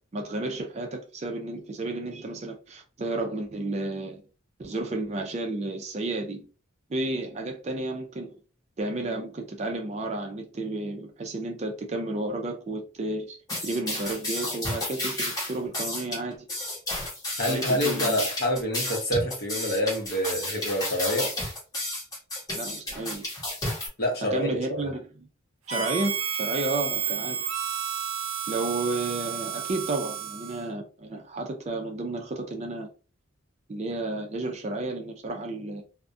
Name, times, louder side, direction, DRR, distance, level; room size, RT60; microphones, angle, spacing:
voice 1, 0.1-4.2 4.6-6.5 6.9-8.3 8.8-16.5 17.5-18.2 22.5-23.2 24.3-25.3 25.7-27.4 28.5-32.9 33.7-35.8, right 2 dB, 30° right, 0.4 m, -32 dB
sound 1, 13.5-23.9, left 1 dB, 20° left, 0.9 m, -32 dB
voice 2, 17.4-21.3 24.0-24.9, equal, 50° left, 0.8 m, -27 dB
Harmonica, 25.7-30.7, right 8 dB, 85° right, 0.5 m, -31 dB
2.3 x 2.1 x 2.5 m
head